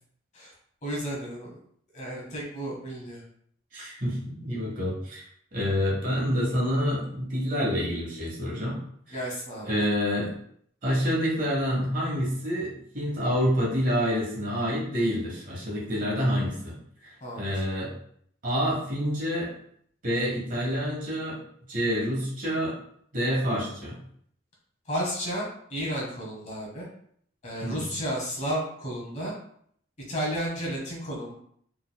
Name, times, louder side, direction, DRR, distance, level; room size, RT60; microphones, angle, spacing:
voice 1, 0.8-1.6 1.9-3.2 9.1-9.7 17.2-17.6 24.9-26.9 27.4-29.3 30.1-31.3, equal, 35° left, -3 dB, 1.2 m, -32 dB
voice 2, 3.7-5.2 5.5-8.8 9.1-9.3 9.7-10.3 10.8-17.9 18.4-19.5 20.0-21.4 21.7-22.8 23.1-24.0 27.6-27.9, equal, 40° right, -4 dB, 1.4 m, -28 dB
4.5 x 3.5 x 2.3 m, 0.65 s
head